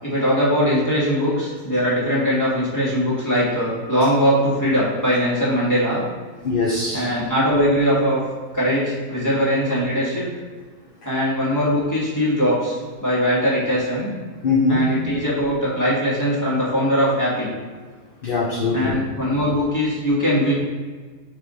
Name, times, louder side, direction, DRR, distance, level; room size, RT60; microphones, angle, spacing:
voice 1, 0.0-6.0 6.9-8.2 8.5-10.3 11.1-14.1 14.7-17.5 18.7-20.6, equal, 10° left, -7 dB, 1.8 m, -21 dB
voice 2, 6.4-7.0 14.4-14.9 18.2-18.9, left 3 dB, 45° left, -3 dB, 0.8 m, -21 dB
6.3 x 3.4 x 5.4 m, 1.5 s
omnidirectional pair, 1.6 m